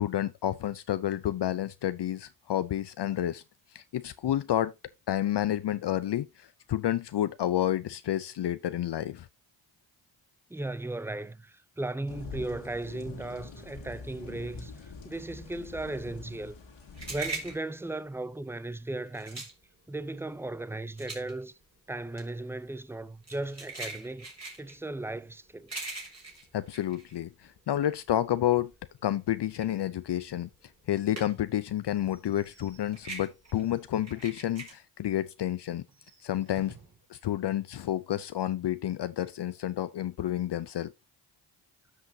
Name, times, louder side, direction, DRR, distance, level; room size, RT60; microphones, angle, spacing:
voice 1, 0.0-3.4 3.7-4.7 5.1-9.3 26.5-28.7 29.0-30.5 30.9-35.8 36.2-36.8 37.1-40.9, left 12 dB, 60° left, 0.6 m, -30 dB
voice 2, 10.5-16.6 17.1-19.4 19.9-21.6 21.9-24.3 24.6-25.7, right 2 dB, 5° right, 0.5 m, -36 dB
sound 1, 12.1-17.6, left 4 dB, 80° left, 2.4 m, -45 dB
sound 2, 16.2-27.8 28.2-31.6 31.9-34.7, right 3 dB, 35° right, 3.8 m, -42 dB
Slam / Squeak / Wood, 31.2-34.4 34.8-34.9 35.2-35.3 35.8-37.1, right 4 dB, 55° right, 4.2 m, -57 dB
12.5 x 5.6 x 2.7 m
cardioid pair, 45°, 46 cm